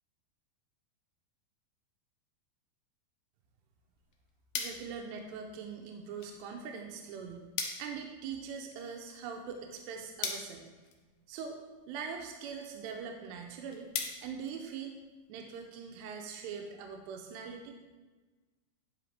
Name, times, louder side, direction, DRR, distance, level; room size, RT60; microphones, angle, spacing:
sound 1, 3.8-15.3, left 6 dB, 85° left, 1.9 m, -44 dB
voice 1, 4.6-7.5 7.8-10.7 11.3-11.6 11.9-13.9 14.2-15.0 15.3-17.7, right 6 dB, 85° right, 3 dB, 2.8 m, -42 dB
9.8 x 5.7 x 3.4 m, 1.3 s
omnidirectional pair, 4.9 m